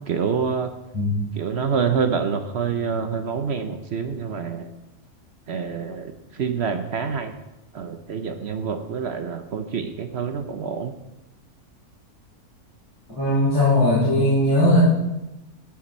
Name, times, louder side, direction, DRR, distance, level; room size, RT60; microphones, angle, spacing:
voice 1, 0.1-0.7 1.3-4.7 5.5-7.3 7.7-10.9, right 6 dB, 55° right, 8 dB, 0.8 m, -27 dB
voice 2, 13.2-14.8, left 1 dB, 10° left, -11 dB, 4.5 m, -19 dB
16.0 x 6.0 x 4.3 m, 0.98 s
omnidirectional pair, 1.6 m